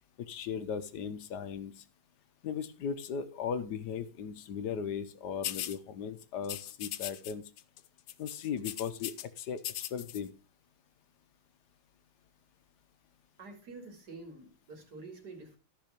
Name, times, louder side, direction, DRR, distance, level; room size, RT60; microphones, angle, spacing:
voice 1, 0.2-1.7 2.4-7.4 8.2-9.6 9.9-10.3, left 7 dB, 60° left, 12 dB, 1.2 m, -37 dB
sound 1, 5.4-5.8 6.4-7.3 7.6-7.8 8.1-9.3 9.6-10.2, left 13 dB, 85° left, 1.6 m, -39 dB
voice 2, 13.4-15.6, right 3 dB, 50° right, 4 dB, 2.9 m, -48 dB
14.0 x 5.6 x 5.1 m, 0.33 s
omnidirectional pair, 2.3 m